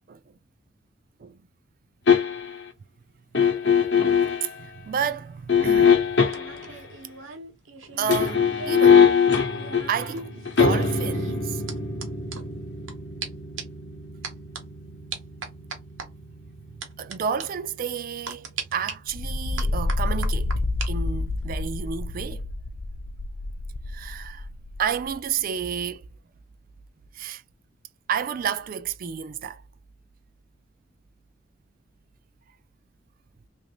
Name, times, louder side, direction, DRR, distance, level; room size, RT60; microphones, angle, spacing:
sound 1, 2.1-2.6 3.3-4.5 5.5-6.7 7.9-18.9 19.2-19.3, left 6 dB, 60° left, 0.8 m, -23 dB
voice 1, 4.4-6.3 6.7-6.8 8.0-9.1 9.9-11.6 16.7-22.5 23.9-24.5 24.8-26.1 27.1-27.4 28.1-29.6, right 7 dB, 45° right, 0.3 m, -31 dB
sound 2, 5.5-8.9 9.2-12.9 13.2-13.3 13.6-13.8 14.2-14.6 15.1-16.1 16.8-17.1 17.4-17.5 18.3-18.9 19.6-20.9 21.2-21.6, right 5 dB, 80° right, 0.9 m, -38 dB
sound 3, 19.1-25.1, left 2 dB, 35° left, 0.3 m, -29 dB
3.0 x 2.5 x 3.0 m
head